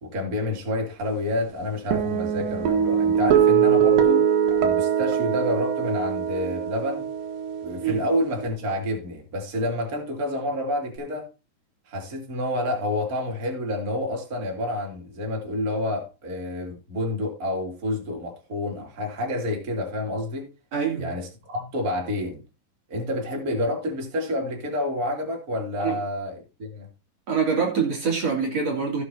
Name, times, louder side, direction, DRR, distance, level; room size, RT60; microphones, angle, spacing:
voice 1, 0.0-4.3 4.6-7.0 7.6-11.3 11.9-20.5 21.0-22.4 22.9-26.9, left 1 dB, 25° right, 3.0 m, -29 dB
sound 1, 1.9-8.5, right 8 dB, 85° right, 3.3 m, -22 dB
voice 2, 20.7-21.1 25.8-26.0 27.3-29.0, right 5 dB, 50° right, 3.5 m, -25 dB
16.5 x 7.7 x 2.8 m
omnidirectional pair, 4.0 m